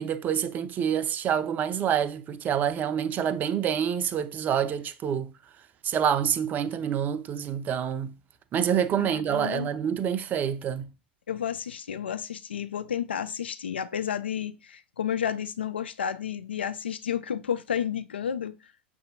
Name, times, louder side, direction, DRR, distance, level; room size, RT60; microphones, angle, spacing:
voice 1, 0.0-5.3 5.8-8.1 8.5-10.9, right 8 dB, 30° right, 0.4 m, -27 dB
voice 2, 9.0-9.7 11.3-18.5, left 8 dB, 75° left, 0.4 m, -31 dB
6.5 x 2.7 x 2.7 m
figure-of-eight pair, 85°, 6 cm